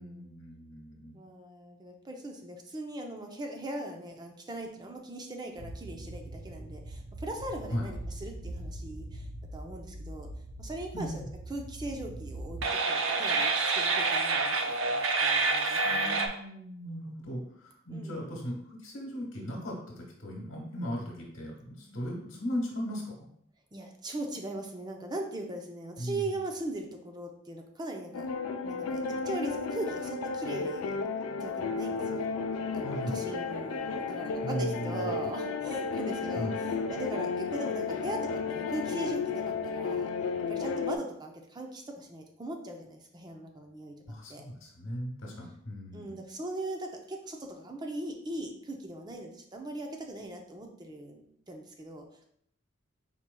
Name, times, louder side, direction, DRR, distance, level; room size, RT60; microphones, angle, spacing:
voice 1, 0.0-1.2 7.7-7.9 10.9-11.3 15.8-23.1 26.0-26.3 32.8-33.3 34.4-35.1 36.4-36.6 44.1-46.2, equal, 65° left, -1 dB, 1.3 m, -37 dB
voice 2, 1.1-9.3 9.5-10.3 10.6-12.6 12.9-16.2 17.9-18.2 23.7-28.3 28.6-40.1 40.5-44.0 44.3-44.8 45.9-52.0, right 1 dB, 20° right, 3 dB, 0.5 m, -40 dB
sound 1, 5.6-16.3, right 3 dB, 70° right, 0.5 m, -31 dB
sound 2, 28.1-41.0, left 4 dB, 90° left, 0.4 m, -33 dB
4.4 x 4.3 x 2.2 m, 0.70 s
head